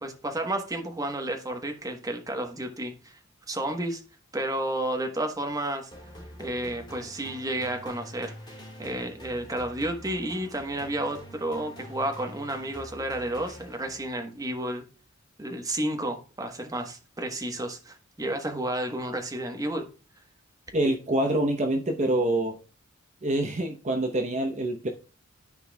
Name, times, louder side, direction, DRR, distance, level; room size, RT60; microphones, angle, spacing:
voice 1, 0.0-3.2 3.5-4.0 4.3-5.9 6.4-14.9 15.4-19.9, right 1 dB, 15° right, 1.2 m, -31 dB
sound 1, 5.9-14.2, equal, 20° left, 2.6 m, -46 dB
voice 2, 20.7-22.6 23.2-24.9, right 1 dB, 35° right, 0.9 m, -26 dB
13.5 x 4.6 x 2.3 m
head